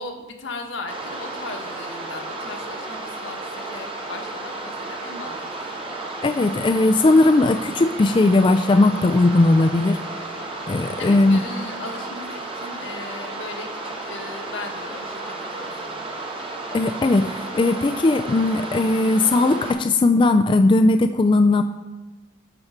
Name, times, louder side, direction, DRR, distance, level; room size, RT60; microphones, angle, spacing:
voice 1, 0.0-5.4 5.7-5.9 11.0-16.2, left 2 dB, 80° left, 2 dB, 1.5 m, -37 dB
sound 1, 0.9-19.7, right 2 dB, 30° right, 1.3 m, -33 dB
voice 2, 6.2-10.0 10.7-11.4 16.7-21.6, left 2 dB, 25° left, 7 dB, 0.3 m, -18 dB
12.0 x 4.6 x 5.9 m, 1.2 s
head